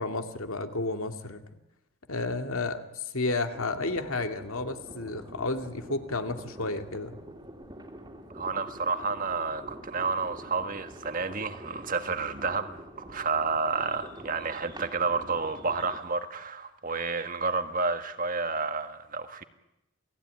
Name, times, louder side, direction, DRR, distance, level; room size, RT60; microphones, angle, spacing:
voice 1, 0.0-1.4 2.1-2.8 3.1-7.2, left 2 dB, 75° left, 2.3 m, -31 dB
sound 1, 3.5-16.0, right 1 dB, 20° right, 2.7 m, -46 dB
voice 2, 8.3-19.4, right 4 dB, 40° right, 1.6 m, -30 dB
28.5 x 18.0 x 9.5 m
head